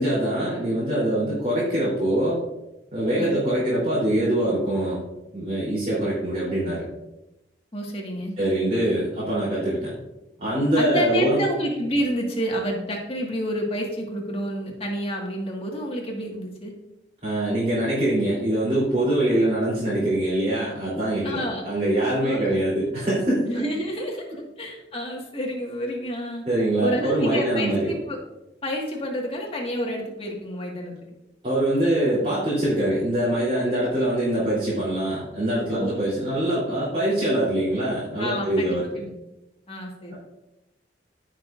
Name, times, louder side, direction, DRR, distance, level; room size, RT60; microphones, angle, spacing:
voice 1, 0.0-2.4 2.9-5.0 5.3-6.8 8.4-9.9 10.4-11.4 17.2-23.7 26.5-27.9 31.4-38.9, right 1 dB, 35° right, -10 dB, 3.7 m, -23 dB
voice 2, 7.7-8.3 10.8-16.7 21.2-21.6 22.2-22.6 23.5-24.3 24.6-26.5 26.8-28.2 28.6-31.1 35.7-35.9 38.2-39.1 39.7-40.1, equal, 30° left, 0 dB, 1.9 m, -29 dB
16.5 x 6.1 x 2.6 m, 0.93 s
head